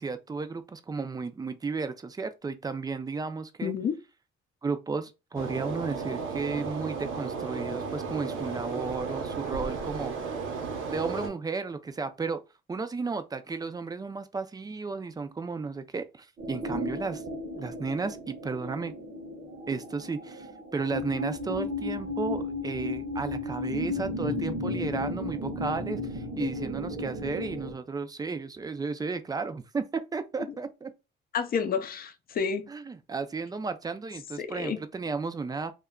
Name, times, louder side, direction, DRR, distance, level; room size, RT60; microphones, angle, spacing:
voice 1, 0.0-3.7 4.6-10.1 10.9-12.4 12.7-17.2 17.6-18.9 19.7-20.5 20.7-30.9 32.7-35.7, right 4 dB, 20° right, 0.4 m, -33 dB
voice 2, 3.6-3.9 31.3-32.7 34.4-34.8, left 6 dB, 50° left, 0.5 m, -30 dB
sound 1, 5.3-11.3, right 5 dB, 85° right, 0.8 m, -34 dB
sound 2, 16.4-27.7, left 2 dB, 50° right, 0.7 m, -34 dB
2.2 x 2.1 x 3.5 m
cardioid pair, 90°, 20 cm